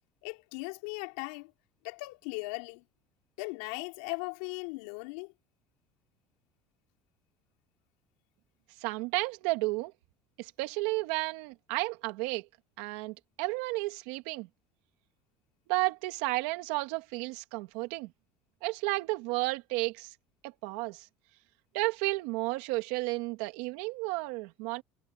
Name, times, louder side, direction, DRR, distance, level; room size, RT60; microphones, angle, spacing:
voice 1, 0.2-1.5 1.8-2.8 3.4-5.3, left 27 dB, 90° left, 3.9 m, -38 dB
voice 2, 8.8-9.9 10.4-12.5 12.8-14.5 15.7-18.1 18.6-20.1 20.4-21.1 21.7-24.8, right 22 dB, 80° right, 2.3 m, -32 dB
cardioid pair, 155°, 4 cm